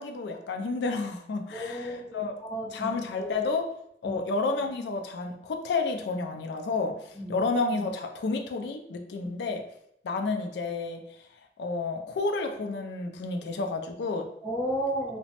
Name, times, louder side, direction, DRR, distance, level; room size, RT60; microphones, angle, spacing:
voice 1, 0.0-2.3 2.7-3.7 4.0-9.6 10.0-11.0 11.6-14.3, left 3 dB, 70° left, 6 dB, 0.3 m, -30 dB
voice 2, 1.5-2.9 3.2-3.3 4.0-4.2 7.1-7.4 14.4-15.2, equal, 10° left, -8 dB, 0.8 m, -33 dB
2.9 x 2.1 x 2.8 m, 0.75 s
head